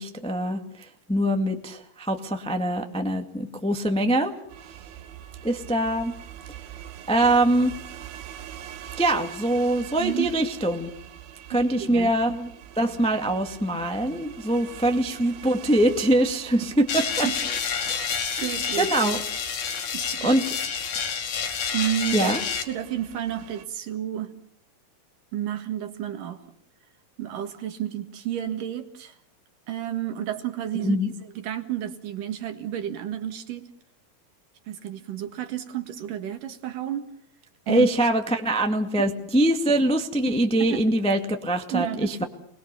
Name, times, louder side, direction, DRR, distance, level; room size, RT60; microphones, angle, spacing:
voice 1, 0.0-4.4 5.4-6.1 7.1-7.7 9.0-10.9 11.5-12.5 12.7-17.3 17.8-19.2 20.2-20.4 22.1-22.4 30.7-31.1 37.7-42.2, right 1 dB, 10° left, 5 dB, 0.4 m, -23 dB
sound 1, 4.5-23.6, right 10 dB, 80° right, 3.1 m, -44 dB
voice 2, 10.0-10.3 11.5-12.1 17.2-17.3 18.4-19.1 19.9-20.3 21.7-22.3 22.7-24.3 25.3-26.4 27.2-29.1 29.7-31.0 31.4-33.7 34.7-37.1 37.7-37.9 40.3-40.4 40.7-40.9 41.7-42.3, right 11 dB, 65° right, 8 dB, 3.1 m, -31 dB
sound 2, 16.9-22.6, left 6 dB, 70° left, 4.2 m, -29 dB
29.0 x 21.0 x 6.9 m, 0.65 s
omnidirectional pair, 4.4 m